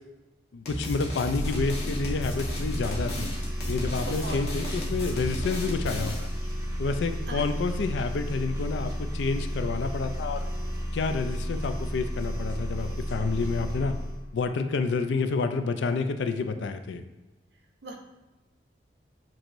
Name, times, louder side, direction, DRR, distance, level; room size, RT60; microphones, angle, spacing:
voice 1, 0.5-3.3 3.7-6.3 6.8-10.5 10.9-14.0 14.3-17.0, left 4 dB, 75° left, 8 dB, 0.4 m, -29 dB
sound 1, 0.7-6.4, equal, 55° left, 1.0 m, -35 dB
sound 2, 1.3-14.3, equal, 15° right, 0.7 m, -32 dB
voice 2, 4.0-4.4 7.3-7.4 17.8-18.0, right 2 dB, 70° right, 2 dB, 0.7 m, -37 dB
6.1 x 3.0 x 2.6 m, 1.1 s
head